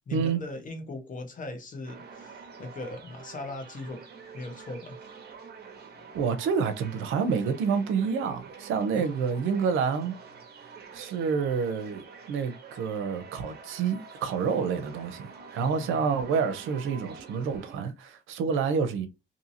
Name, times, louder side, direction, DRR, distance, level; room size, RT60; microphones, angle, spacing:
voice 1, 0.1-4.0 4.3-5.0 8.9-9.5 15.6-16.1, left 2 dB, 40° left, 1.0 m, -39 dB
sound 1, 1.8-17.8, right 5 dB, 55° right, 0.9 m, -47 dB
voice 2, 6.1-10.1 10.9-19.1, right 6 dB, 85° right, 0.6 m, -28 dB
2.7 x 2.7 x 2.7 m
cardioid pair, 90°, 20 cm